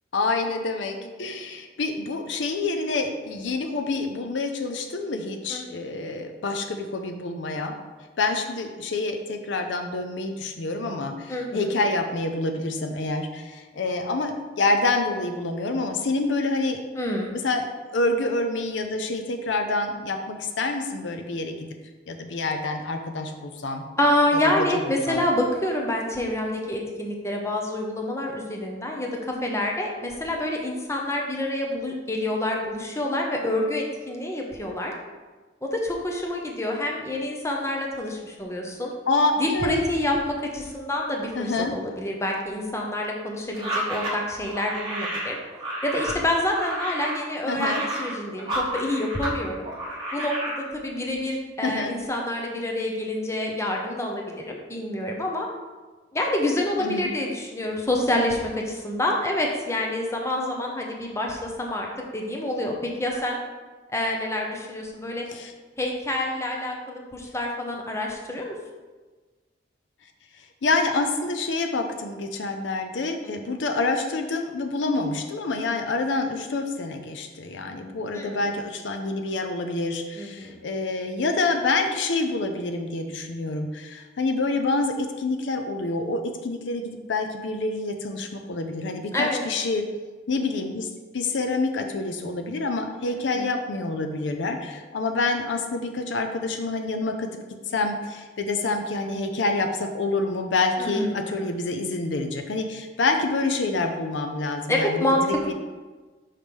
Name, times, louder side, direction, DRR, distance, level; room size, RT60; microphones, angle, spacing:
voice 1, 0.1-7.7 8.2-16.8 17.3-21.6 22.1-23.8 24.3-25.2 39.1-39.8 41.3-41.7 47.5-47.8 51.6-52.0 56.8-57.1 65.3-65.5 70.4-89.8 90.3-97.3 97.7-105.5, left 3 dB, 75° left, 6 dB, 0.6 m, -27 dB
voice 2, 5.5-5.8 11.3-11.7 16.9-17.3 24.0-34.9 35.6-38.9 39.4-45.4 45.8-49.7 50.1-55.5 56.1-61.9 62.1-63.4 63.9-65.2 65.8-68.6 73.2-73.3 78.1-78.4 80.2-80.6 89.1-89.4 93.1-93.5 100.8-101.5 104.7-105.2, left 1 dB, 15° left, 0 dB, 0.7 m, -27 dB
sound 1, 43.5-49.4 49.6-50.6, right 1 dB, 25° right, 1.3 m, -31 dB
5.7 x 3.2 x 5.2 m, 1.3 s
head